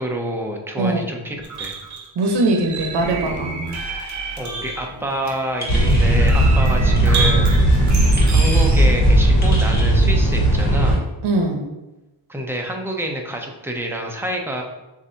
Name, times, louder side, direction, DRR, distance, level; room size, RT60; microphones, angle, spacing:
voice 1, 0.0-1.8 4.4-7.6 8.3-11.0 12.3-14.6, right 1 dB, 5° right, 1 dB, 0.4 m, -27 dB
sound 1, 1.4-8.9, right 4 dB, 40° right, 0.8 m, -29 dB
voice 2, 2.2-3.5 11.2-11.7, right 2 dB, 70° right, 3 dB, 0.9 m, -20 dB
sound 2, 5.6-6.1 6.9-7.1 8.2-8.7 9.4-10.0, left 1 dB, 20° left, 0.8 m, -33 dB
sound 3, 5.7-11.0, right 1 dB, 70° left, 1.5 m, -16 dB
6.8 x 2.6 x 2.7 m, 1.0 s
wide cardioid pair, 150°, 43 cm